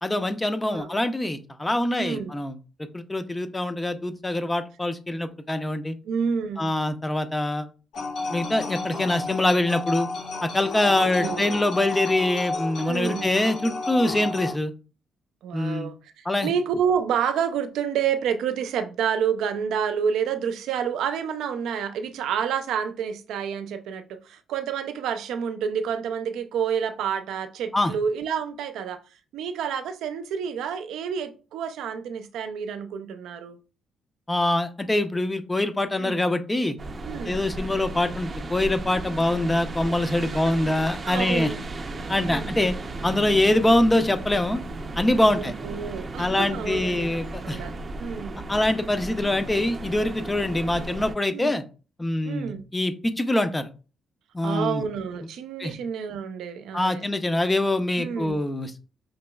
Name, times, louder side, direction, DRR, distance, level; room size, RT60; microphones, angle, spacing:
voice 1, 0.0-2.6 2.9-6.0 6.6-7.7 8.3-10.1 10.4-14.7 15.5-15.9 16.2-16.5 27.7-27.9 34.3-36.8 37.2-41.5 42.1-42.7 43.0-44.6 45.0-45.6 46.2-47.6 48.5-51.6 52.0-53.7 54.3-54.8 55.6-55.7 56.7-58.8, left 1 dB, 15° left, 0.6 m, -24 dB
voice 2, 2.0-2.3 6.0-6.7 11.0-11.6 12.8-13.3 15.4-29.0 29.3-33.6 36.0-36.2 37.0-37.4 40.2-40.7 41.0-41.6 42.1-42.5 45.3-47.1 47.4-47.7 48.0-48.4 51.3-51.5 52.3-52.6 54.4-57.0 58.0-58.4, right 7 dB, 80° right, 0.5 m, -29 dB
sound 1, 7.9-14.5, left 3 dB, 80° left, 1.4 m, -32 dB
sound 2, 36.8-51.1, right 2 dB, 35° right, 0.7 m, -35 dB
5.2 x 2.9 x 2.3 m
cardioid pair, 90°, 0 cm